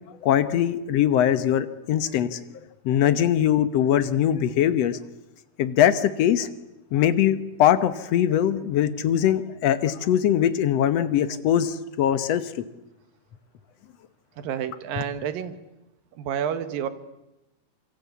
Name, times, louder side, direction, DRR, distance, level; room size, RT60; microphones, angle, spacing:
voice 1, 0.1-2.4 2.8-5.0 5.6-6.5 6.9-12.6, left 10 dB, 70° left, 12 dB, 1.5 m, -22 dB
voice 2, 14.4-15.6 16.1-16.9, right 8 dB, 70° right, 12 dB, 3.1 m, -29 dB
26.5 x 24.0 x 8.4 m, 0.98 s
omnidirectional pair, 4.3 m